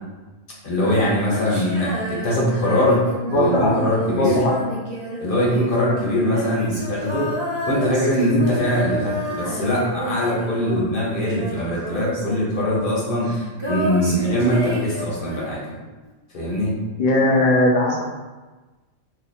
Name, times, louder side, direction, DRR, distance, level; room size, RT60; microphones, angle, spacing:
voice 1, 0.6-3.0 3.3-4.5 5.2-7.3 7.7-13.3 13.7-15.8 16.3-16.7, left 1 dB, 45° left, -5 dB, 1.0 m, -22 dB
Female singing, 0.7-11.0 11.3-15.7, right 1 dB, 30° right, 0.5 m, -30 dB
voice 2, 3.3-3.8 4.2-4.5 17.0-18.0, left 1 dB, 75° left, -3 dB, 0.3 m, -18 dB
2.7 x 2.5 x 4.1 m, 1.2 s
omnidirectional pair, 1.4 m